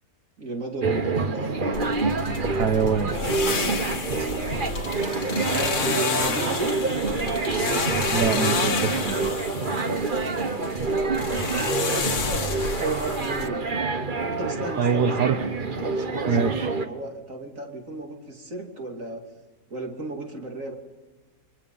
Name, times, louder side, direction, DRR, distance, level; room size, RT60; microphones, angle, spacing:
voice 1, 0.4-1.8 4.1-5.1 5.5-6.8 11.9-13.7 14.3-15.3 15.6-19.3 19.7-20.7, right 2 dB, 55° right, 2 dB, 3.3 m, -34 dB
sound 1, 0.8-16.9, right 3 dB, 35° right, 1.3 m, -27 dB
sound 2, 1.7-13.5, left 5 dB, 70° left, 2.1 m, -30 dB
voice 2, 2.5-3.2 8.1-9.3 14.8-15.4 16.3-16.7, right 6 dB, 80° right, 6 dB, 1.7 m, -24 dB
29.5 x 24.5 x 5.6 m, 1.2 s
omnidirectional pair, 1.7 m